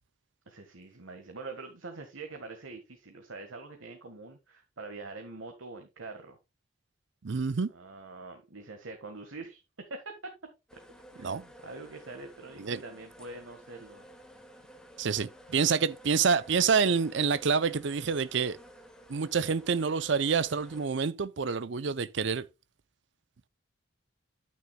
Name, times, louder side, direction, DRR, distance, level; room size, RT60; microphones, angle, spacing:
voice 1, 0.5-6.4 7.7-9.6 9.9-10.3 10.7-10.8 11.2-14.1, right 3 dB, 85° right, 1.5 m, -44 dB
voice 2, 7.2-7.7 11.2-11.4 12.6-12.8 15.0-18.6 19.1-22.5, right 5 dB, 65° right, 0.5 m, -27 dB
sound 1, 10.7-20.9, equal, 5° left, 1.5 m, -53 dB
9.6 x 9.5 x 2.3 m
head